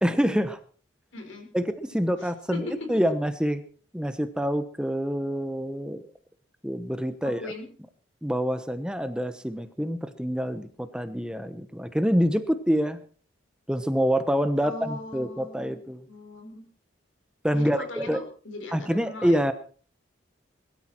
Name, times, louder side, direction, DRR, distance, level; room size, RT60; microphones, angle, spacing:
voice 1, 0.0-0.6 1.5-3.6 3.9-6.0 6.6-7.4 8.2-13.0 13.7-16.0 17.4-18.2 18.7-19.5, equal, 5° right, 11 dB, 1.0 m, -26 dB
voice 2, 1.1-1.5 2.2-2.9 7.2-7.7 14.6-15.8 16.1-16.6 17.5-19.4, left 2 dB, 90° left, 4 dB, 5.3 m, -39 dB
21.0 x 12.5 x 4.5 m, 0.41 s
head